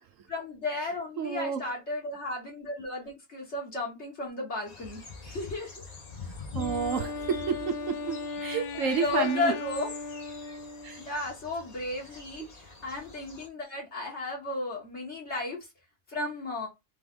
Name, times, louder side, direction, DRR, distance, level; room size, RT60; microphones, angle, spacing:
voice 1, 0.3-5.7 8.7-9.9 11.0-15.7 16.1-16.7, left 2 dB, 50° left, 1.7 m, -34 dB
voice 2, 1.2-1.7 6.5-9.5 10.8-11.0 12.4-12.5, right 6 dB, 70° right, 1.0 m, -31 dB
sound 1, 4.7-13.5, left 4 dB, 30° left, 1.1 m, -45 dB
Wind instrument woodwind instrument, 6.5-11.2, left 4 dB, 80° left, 0.4 m, -37 dB
3.8 x 3.4 x 3.6 m
omnidirectional pair, 1.5 m